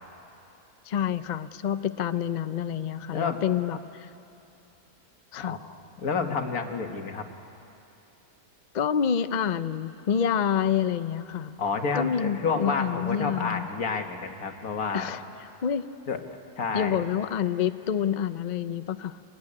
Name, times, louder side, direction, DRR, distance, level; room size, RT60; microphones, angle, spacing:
voice 1, 0.9-4.1 5.3-5.6 8.7-11.5 11.9-13.7 14.9-15.2 15.6-15.8 16.7-19.2, left 8 dB, 50° left, 12 dB, 0.5 m, -27 dB
voice 2, 3.1-3.4 5.4-5.6 6.0-7.3 11.6-15.1 16.1-16.2 16.6-17.0, left 4 dB, 80° left, 5 dB, 1.9 m, -29 dB
25.0 x 20.0 x 9.8 m, 2.8 s
omnidirectional pair, 1.5 m